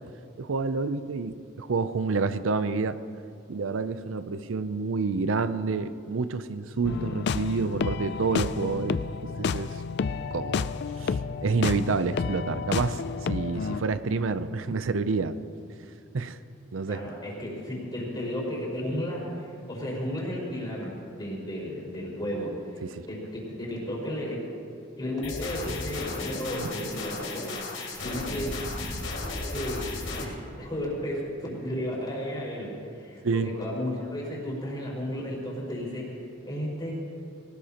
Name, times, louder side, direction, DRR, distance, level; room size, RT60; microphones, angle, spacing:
voice 1, 0.4-3.0 3.5-9.8 10.3-10.7 11.0-15.4 16.1-16.4 16.7-17.0 22.9-23.1 26.6-26.7 33.2-33.5, right 4 dB, 85° right, 12 dB, 0.5 m, -28 dB
sound 1, 6.8-13.8, left 5 dB, 60° left, 0.4 m, -30 dB
voice 2, 16.9-24.4 25.0-28.6 29.5-36.9, left 1 dB, 20° left, -5 dB, 4.9 m, -34 dB
sound 2, 25.2-30.2, left 2 dB, 85° left, 3.3 m, -34 dB
22.5 x 19.0 x 2.9 m, 2.5 s
head